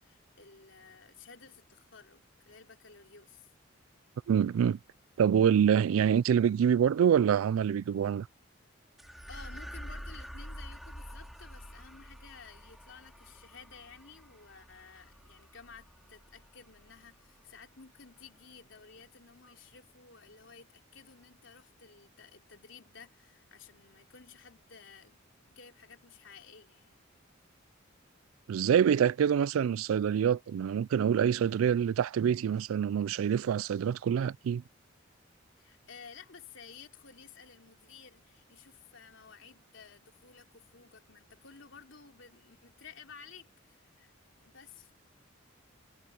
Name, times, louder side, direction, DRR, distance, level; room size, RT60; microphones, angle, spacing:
voice 1, 0.0-3.5 9.3-27.0 35.6-44.1 44.4-44.9, left 5 dB, 70° left, 3.5 m, -54 dB
voice 2, 4.3-4.8 5.2-8.3 28.5-34.6, right 8 dB, 90° right, 0.3 m, -26 dB
sound 1, 9.0-17.6, equal, ahead, 3.9 m, -47 dB
head